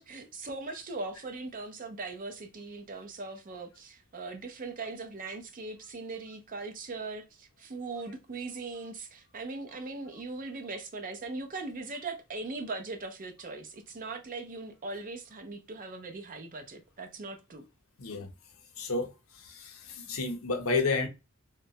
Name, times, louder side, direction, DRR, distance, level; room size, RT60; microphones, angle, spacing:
voice 1, 0.0-17.7, right 3 dB, 40° right, 0.5 m, -40 dB
voice 2, 18.8-19.1 19.4-21.1, left 3 dB, 80° left, 0.6 m, -31 dB
3.0 x 2.2 x 2.7 m
head